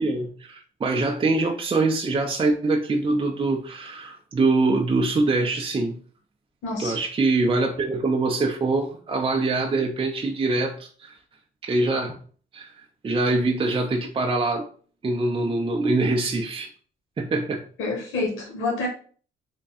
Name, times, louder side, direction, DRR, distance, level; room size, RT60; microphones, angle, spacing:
voice 1, 0.0-5.9 6.8-11.2 11.6-12.2 12.5-12.7 13.0-14.7 15.0-16.7 17.2-17.6, right 3 dB, 25° right, 1 dB, 0.5 m, -24 dB
voice 2, 6.6-7.0 17.8-18.9, left 3 dB, 85° left, -1 dB, 1.2 m, -27 dB
3.5 x 2.2 x 4.1 m, 0.43 s
cardioid pair, 90°, 20 cm